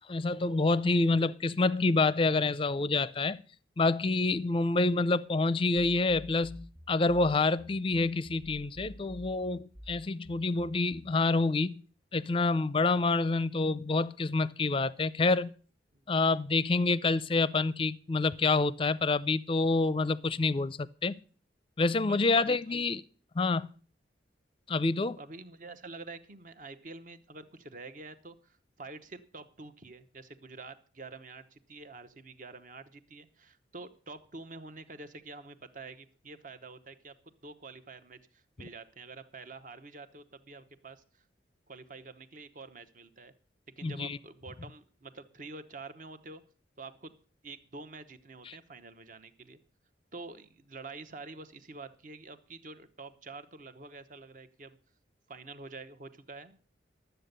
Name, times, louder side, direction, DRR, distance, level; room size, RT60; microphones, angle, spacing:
voice 1, 0.1-3.4 3.8-11.8 12.1-15.5 16.1-21.1 21.8-23.0 23.4-23.7 24.7-25.2 43.8-44.2 48.5-48.6, left 3 dB, 30° left, 0.5 m, -27 dB
sound 1, 6.1-11.2, equal, 15° right, 1.3 m, -50 dB
voice 2, 24.9-37.1 37.4-41.2 41.7-43.3 43.7-46.4 46.8-47.1 47.4-49.6 50.1-54.8 55.3-56.6, right 3 dB, 45° right, 1.0 m, -47 dB
12.5 x 8.0 x 6.7 m
head